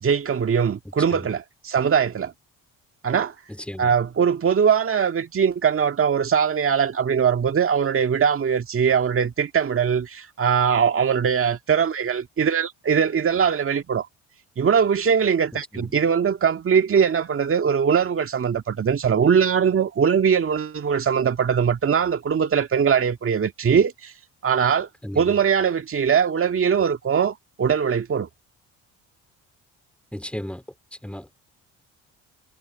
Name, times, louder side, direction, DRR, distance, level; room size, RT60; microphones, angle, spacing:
voice 1, 0.0-2.3 3.0-3.3 3.8-14.1 14.6-24.1 24.4-24.9 25.2-28.3, right 7 dB, 40° right, 1.9 m, -21 dB
voice 2, 0.9-1.3 3.5-4.0 15.7-15.9 25.0-25.4 30.1-30.6 31.0-31.3, equal, 5° left, 3.6 m, -35 dB
supercardioid pair, 70°, 34 cm